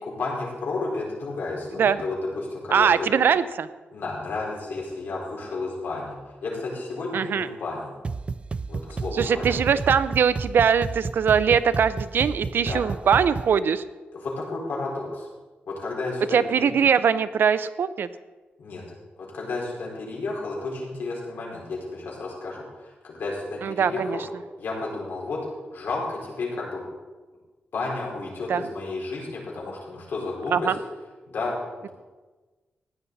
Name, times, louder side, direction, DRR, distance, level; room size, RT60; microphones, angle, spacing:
voice 1, 0.0-3.1 3.9-7.9 8.7-9.6 12.7-12.8 14.1-15.3 15.7-16.7 18.6-18.8 19.2-24.2 24.6-25.4 25.7-26.8 27.7-30.7 31.3-31.9, left 3 dB, 70° left, -3 dB, 4.5 m, -32 dB
voice 2, 2.7-3.7 7.1-7.5 9.1-13.8 16.3-18.1 23.6-24.3 28.5-28.6 30.5-30.8, right 7 dB, 70° right, 14 dB, 0.6 m, -21 dB
sound 1, 8.0-13.6, right 4 dB, 30° right, 0.3 m, -32 dB
15.5 x 10.0 x 4.1 m, 1.3 s
wide cardioid pair, 120°, 4 cm